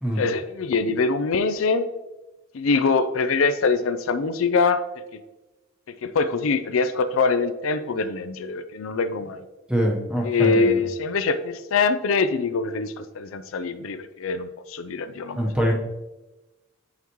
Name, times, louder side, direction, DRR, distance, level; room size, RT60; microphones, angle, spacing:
voice 1, 0.2-1.9 2.5-4.8 5.1-5.2 6.0-9.4 10.2-15.4, left 4 dB, 90° left, 11 dB, 0.5 m, -23 dB
voice 2, 9.7-10.8 15.3-15.7, equal, 5° right, 0 dB, 1.1 m, -24 dB
8.5 x 5.8 x 3.1 m, 1.1 s
head